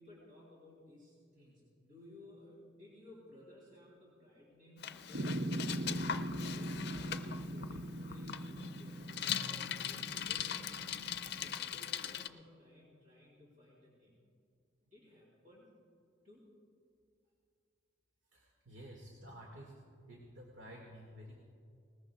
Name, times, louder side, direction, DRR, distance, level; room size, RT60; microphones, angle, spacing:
voice 1, 0.0-6.0 6.3-9.0 9.4-10.7 11.4-14.2 14.8-15.7 16.2-16.5 18.7-18.8, left 1 dB, 45° right, -5 dB, 3.3 m, -58 dB
Bicycle, 4.8-12.3, left 9 dB, 60° left, 0.5 m, -41 dB
sound 1, 5.1-11.6, right 1 dB, 65° right, 0.7 m, -41 dB
voice 2, 18.3-19.8 20.1-21.3, equal, 85° right, -1 dB, 2.0 m, -52 dB
20.5 x 19.0 x 2.4 m, 2.3 s
head